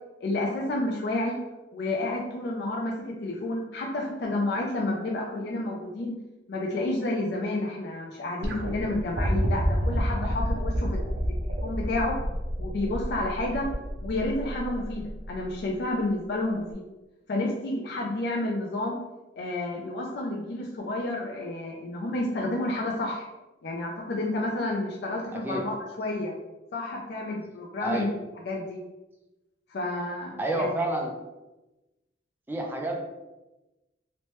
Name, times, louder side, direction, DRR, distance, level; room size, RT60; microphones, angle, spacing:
voice 1, 0.2-1.4 1.7-6.2 6.5-11.0 11.6-12.2 12.6-13.7 14.0-16.8 17.3-19.0 19.4-23.3 23.6-26.3 26.7-28.1 28.4-28.8 29.7-30.7, left 2 dB, 60° left, -2 dB, 0.4 m, -30 dB
sound 1, 8.4-15.6 16.7-16.8, equal, 75° right, 0.5 m, -31 dB
voice 2, 27.8-28.1 30.4-31.1 32.5-33.1, right 1 dB, 10° right, 1 dB, 0.4 m, -29 dB
3.0 x 2.1 x 2.9 m, 1.0 s
head